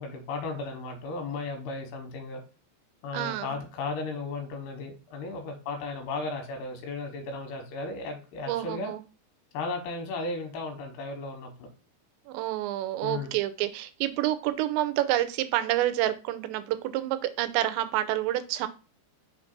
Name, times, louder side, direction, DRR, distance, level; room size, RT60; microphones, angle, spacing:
voice 1, 0.0-2.4 3.0-8.9 9.5-11.7 13.0-13.3, left 3 dB, 75° left, 4 dB, 3.3 m, -35 dB
voice 2, 3.1-3.6 8.5-9.0 12.3-18.7, right 14 dB, 90° right, 10 dB, 2.9 m, -28 dB
6.4 x 5.9 x 2.5 m, 0.34 s
omnidirectional pair, 5.0 m